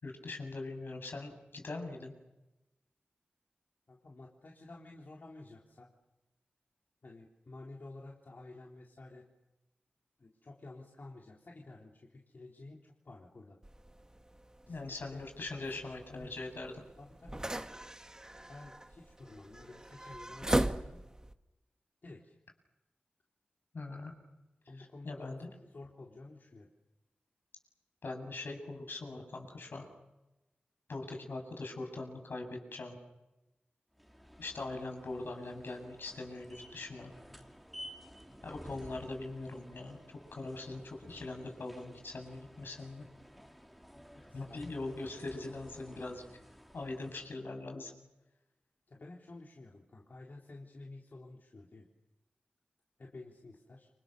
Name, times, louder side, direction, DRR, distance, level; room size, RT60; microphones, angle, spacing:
voice 1, 0.0-2.1 14.7-16.7 23.7-24.1 24.8-25.5 28.0-29.9 30.9-33.0 34.4-37.1 38.4-40.0 40.3-43.1 44.3-46.2 46.7-47.9, left 2 dB, 75° left, 3 dB, 7.9 m, -42 dB
voice 2, 3.9-5.9 7.0-9.3 10.2-13.6 14.7-15.2 15.7-16.3 17.0-17.4 18.5-21.0 22.0-22.3 24.7-26.7 43.9-44.7 45.4-46.0 48.9-51.9 53.0-53.9, left 2 dB, 60° left, -1 dB, 4.0 m, -51 dB
sound 1, 13.6-21.3, right 1 dB, 20° right, 1.8 m, -39 dB
sound 2, 34.0-47.5, equal, ahead, 3.6 m, -54 dB
29.5 x 27.5 x 6.9 m, 0.99 s
wide cardioid pair, 65°, 4 cm